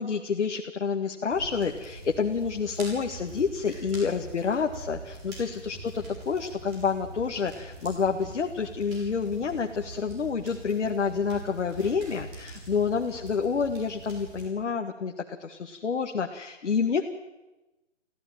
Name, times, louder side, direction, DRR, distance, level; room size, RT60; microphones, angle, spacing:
voice 1, 0.0-17.0, left 5 dB, 65° left, 3 dB, 1.9 m, -28 dB
sound 1, 1.3-14.5, right 2 dB, 25° right, 7.1 m, -44 dB
22.5 x 15.5 x 9.1 m, 1.0 s
hypercardioid pair, 160°, 37 cm